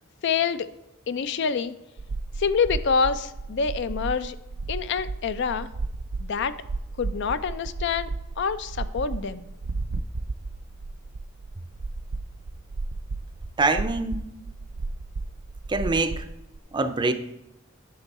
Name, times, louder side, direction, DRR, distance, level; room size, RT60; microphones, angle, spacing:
voice 1, 0.2-0.7 1.1-1.7 2.4-4.4 4.7-5.7 6.2-6.6 7.0-8.1 8.4-9.4, left 5 dB, 60° left, 13 dB, 0.4 m, -26 dB
sound 1, 2.0-16.6, right 3 dB, 65° right, 0.4 m, -34 dB
voice 2, 13.6-14.2 15.7-16.3 16.7-17.1, right 3 dB, 25° right, 9 dB, 0.5 m, -24 dB
10.0 x 6.1 x 4.1 m, 0.89 s
head